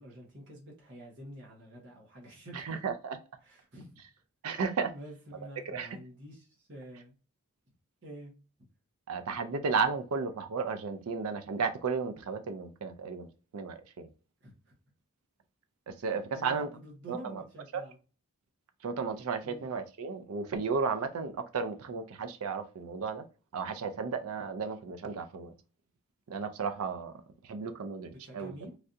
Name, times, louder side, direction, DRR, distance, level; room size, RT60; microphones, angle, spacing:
voice 1, 0.0-2.8 3.4-4.0 4.8-7.1 8.0-8.3 14.4-14.7 16.0-18.0 19.4-19.7 28.1-28.7, right 1 dB, 50° right, 0.9 m, -48 dB
voice 2, 2.5-3.2 4.4-4.9 5.7-5.9 9.1-13.3 13.5-14.1 15.9-16.7 17.1-17.4 17.7-17.8 18.8-23.2 23.5-25.5 26.3-27.1 27.4-28.5, right 5 dB, 75° right, 0.4 m, -34 dB
3.2 x 2.6 x 2.4 m
head